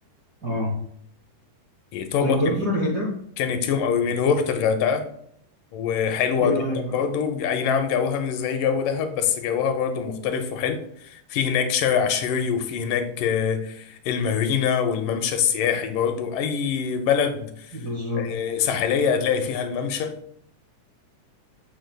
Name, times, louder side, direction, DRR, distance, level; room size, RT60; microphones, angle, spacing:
voice 1, 0.4-0.8 2.2-3.2 6.4-7.0 17.7-18.4, left 1 dB, 65° right, -3 dB, 1.0 m, -26 dB
voice 2, 1.9-2.6 3.4-5.1 5.7-17.8 18.2-20.1, left 7 dB, 85° left, 7 dB, 2.4 m, -24 dB
7.0 x 6.4 x 2.2 m, 0.70 s
omnidirectional pair, 3.7 m